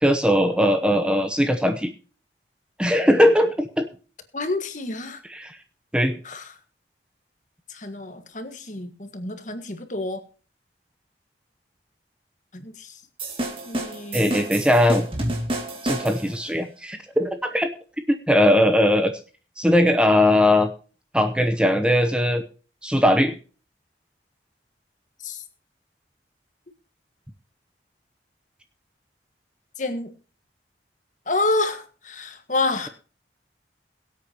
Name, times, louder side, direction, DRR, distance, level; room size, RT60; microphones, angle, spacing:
voice 1, 0.0-1.9 2.8-3.9 5.3-5.5 5.9-6.2 14.1-15.3 15.8-17.7 18.1-19.1 19.6-20.7 21.1-22.4 22.8-23.3, left 1 dB, 5° right, 7 dB, 0.9 m, -19 dB
voice 2, 4.3-5.2 6.2-6.5 7.7-10.2 12.5-13.0 13.6-14.3 25.2-25.4 29.8-30.1 31.2-32.9, left 2 dB, 45° left, 8 dB, 1.7 m, -28 dB
sound 1, 13.2-16.4, right 1 dB, 30° right, 2.6 m, -30 dB
22.5 x 8.4 x 3.0 m, 0.37 s
head